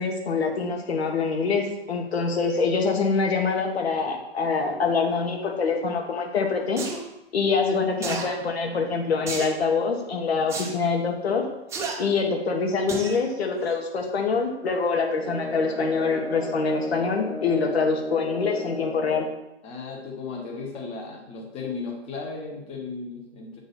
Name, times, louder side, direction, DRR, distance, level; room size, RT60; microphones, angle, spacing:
voice 1, 0.0-6.8 7.3-11.4 12.0-19.3, left 4 dB, 65° left, 2 dB, 1.4 m, -25 dB
sound 1, 6.8-7.0 8.0-8.3 9.3-9.6 10.5-10.7 11.7-11.9 12.9-13.2 13.6-13.7, right 4 dB, 10° right, 0.7 m, -31 dB
sound 2, 15.2-19.4, left 2 dB, 85° left, 1.9 m, -34 dB
voice 2, 19.6-23.6, left 4 dB, 20° left, 1 dB, 1.1 m, -35 dB
8.3 x 4.0 x 4.1 m, 0.91 s
hypercardioid pair, 130°, 34 cm